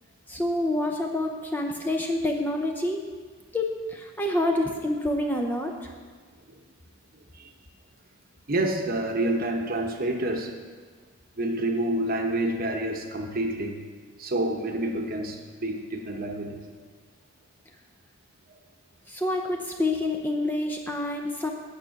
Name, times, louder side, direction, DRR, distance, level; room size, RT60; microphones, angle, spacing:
voice 1, 0.3-3.1 3.5-5.9 19.1-21.5, left 1 dB, 10° left, 2 dB, 0.6 m, -27 dB
voice 2, 8.5-10.5 11.4-13.8 14.2-16.6, right 1 dB, 45° right, 3 dB, 1.0 m, -28 dB
9.1 x 7.1 x 5.8 m, 1.5 s
head